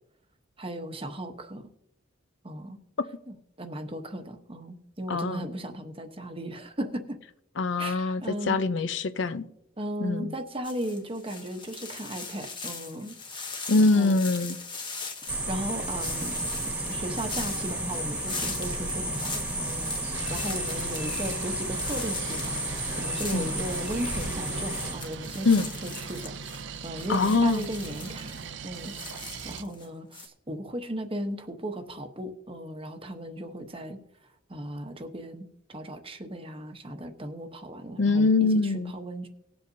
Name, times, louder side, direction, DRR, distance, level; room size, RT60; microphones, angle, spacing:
voice 1, 0.6-1.7 2.4-2.8 3.3-7.2 7.8-8.6 9.8-13.4 13.7-14.2 15.2-16.4 16.7-26.3 26.8-34.0 34.5-39.3, right 1 dB, 30° right, 1.0 m, -36 dB
voice 2, 5.1-5.4 7.6-9.5 10.0-10.3 13.7-14.6 23.3-23.5 25.4-25.7 27.1-27.6 38.0-38.9, left 3 dB, 65° left, 0.6 m, -23 dB
sound 1, 10.6-29.9 30.1-30.3, left 4 dB, 25° left, 1.2 m, -40 dB
sound 2, 15.3-24.9, right 1 dB, 10° right, 1.5 m, -32 dB
sound 3, 20.1-29.6, right 5 dB, 65° right, 0.6 m, -40 dB
19.0 x 7.9 x 2.7 m
head